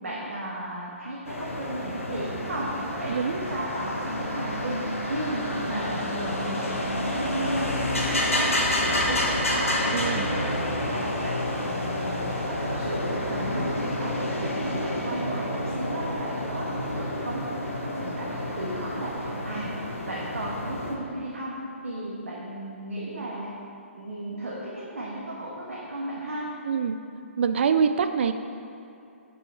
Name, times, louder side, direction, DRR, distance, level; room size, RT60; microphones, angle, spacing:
voice 1, 0.0-5.4 5.7-9.2 9.5-11.4 11.7-19.7 20.1-21.5 21.8-23.5 23.9-26.5, right 1 dB, 75° right, -5 dB, 1.3 m, -35 dB
sound 1, 1.2-20.9, left 1 dB, 85° left, 1.3 m, -29 dB
voice 2, 9.9-10.3 26.7-27.0 27.4-28.3, right 6 dB, 55° right, 8 dB, 0.3 m, -24 dB
7.0 x 5.5 x 4.5 m, 2.6 s
figure-of-eight pair, 130°, 7 cm